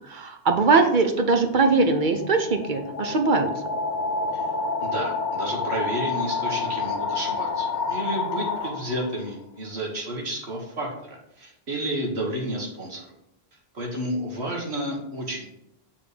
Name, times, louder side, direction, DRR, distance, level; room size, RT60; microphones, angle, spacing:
voice 1, 0.1-3.5, right 3 dB, 50° right, 6 dB, 0.9 m, -21 dB
sound 1, 1.5-9.3, left 4 dB, 50° left, 0.8 m, -29 dB
voice 2, 4.8-13.1 13.7-15.5, right 1 dB, 80° right, 0 dB, 1.8 m, -31 dB
7.2 x 3.7 x 4.9 m, 0.81 s
omnidirectional pair, 1.1 m